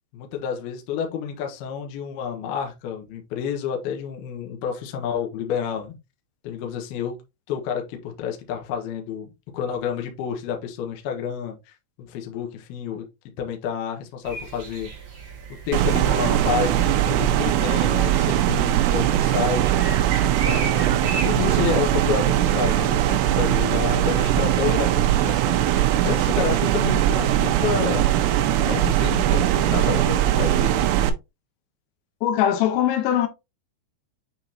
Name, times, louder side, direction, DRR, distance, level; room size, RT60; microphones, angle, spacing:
voice 1, 0.1-6.0 6.4-7.2 7.5-11.8 12.1-13.0 13.4-14.9 15.7-19.7 20.3-20.9 21.2-28.1 28.7-30.8, left 8 dB, 65° left, 2.6 m, -29 dB
sound 1, 14.2-23.1, right 4 dB, 65° right, 1.1 m, -37 dB
sound 2, 15.7-31.1, right 12 dB, 85° right, 2.4 m, -20 dB
voice 2, 32.2-33.3, left 10 dB, 85° left, 3.6 m, -21 dB
8.9 x 3.9 x 2.8 m
omnidirectional pair, 5.8 m